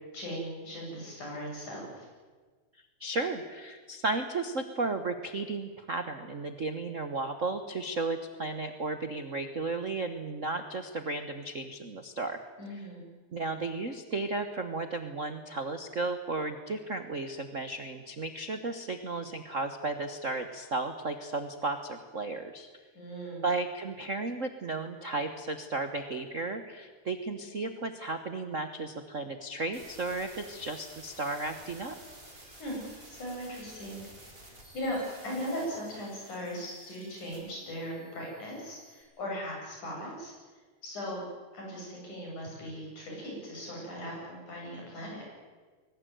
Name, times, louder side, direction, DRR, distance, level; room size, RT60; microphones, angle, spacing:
voice 1, 0.1-2.1 12.6-13.0 23.0-23.5 32.6-34.1 34.5-40.3 40.8-41.2 41.5-45.2, equal, 85° left, -2 dB, 9.4 m, -38 dB
voice 2, 3.0-12.4 13.3-22.7 23.4-31.9, right 3 dB, 60° right, 8 dB, 0.8 m, -34 dB
sound 1, 29.7-39.0, right 1 dB, 15° right, 5.4 m, -52 dB
22.0 x 19.0 x 9.3 m, 1.4 s
omnidirectional pair, 3.4 m